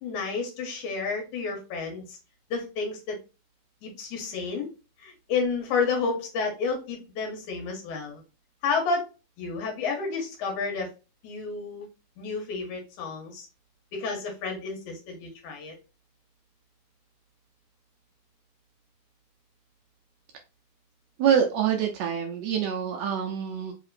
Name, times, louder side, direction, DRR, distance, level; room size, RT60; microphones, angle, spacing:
voice 1, 0.0-2.2 2.5-3.2 3.8-4.7 5.0-8.2 8.6-9.1 9.4-10.9 11.2-11.9 12.2-13.5 13.9-15.8, left 4 dB, 70° left, 2 dB, 2.4 m, -30 dB
voice 2, 21.2-23.7, right 8 dB, 90° right, 2 dB, 1.5 m, -25 dB
5.1 x 2.8 x 2.5 m, 0.30 s
omnidirectional pair, 3.8 m